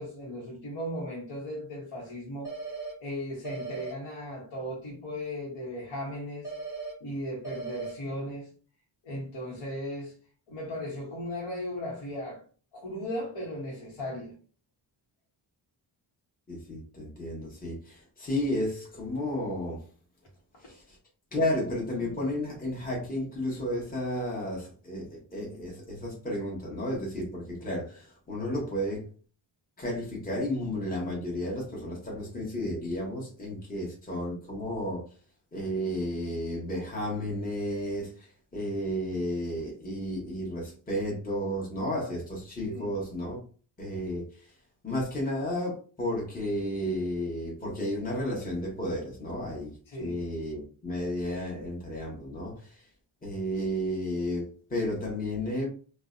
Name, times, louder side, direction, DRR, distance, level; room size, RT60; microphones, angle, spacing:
voice 1, 0.0-2.5 3.0-6.5 7.0-8.5 9.0-10.1 10.5-12.4 12.7-14.3 42.6-42.9 49.9-50.2, equal, 75° left, 0.9 m, -36 dB
sound 1, 2.4-2.9 3.4-3.9 6.4-6.9 7.4-7.9, right 4 dB, 5° right, 1.2 m, -37 dB
voice 2, 16.5-19.8 20.6-21.0 21.3-29.1 29.8-35.0 35.5-43.4 43.8-44.5 44.8-49.7 50.0-52.9 53.2-55.7, left 1 dB, 20° left, 1.1 m, -32 dB
2.5 x 2.1 x 2.4 m
cardioid pair, 80°, 48 cm